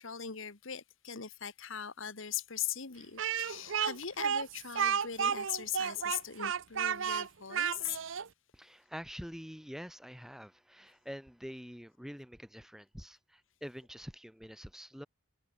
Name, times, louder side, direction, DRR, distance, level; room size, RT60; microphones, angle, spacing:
voice 1, 0.0-8.0, left 9 dB, 70° left, 1.4 m, -40 dB
Speech, 3.2-8.3, right 7 dB, 65° right, 0.7 m, -32 dB
voice 2, 8.5-15.1, equal, ahead, 1.6 m, -46 dB
head